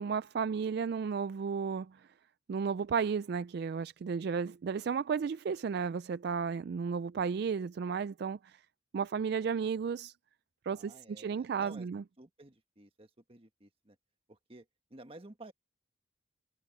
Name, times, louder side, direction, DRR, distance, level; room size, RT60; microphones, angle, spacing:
voice 1, 0.0-2.1 2.5-8.6 8.9-10.1 10.6-12.0, right 6 dB, 55° right, 0.3 m, -33 dB
voice 2, 10.7-11.9 12.2-13.9 14.3-15.5, right 2 dB, 30° right, 1.5 m, -53 dB
head